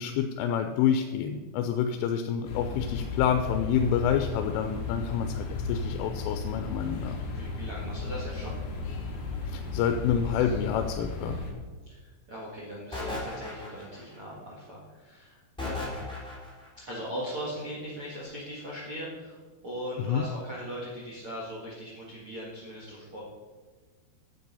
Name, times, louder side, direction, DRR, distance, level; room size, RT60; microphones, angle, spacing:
voice 1, 0.0-7.2 9.5-11.4 20.0-20.3, left 8 dB, 85° left, 6 dB, 3.1 m, -28 dB
sound 1, 2.4-11.5, left 3 dB, 60° left, 2.3 m, -34 dB
voice 2, 7.3-8.6 11.9-16.1 16.8-23.2, equal, 75° right, -4 dB, 1.2 m, -39 dB
sound 2, 12.9-14.2 15.6-16.7, left 2 dB, ahead, 1.1 m, -36 dB
9.4 x 7.8 x 5.4 m, 1.4 s
omnidirectional pair, 5.7 m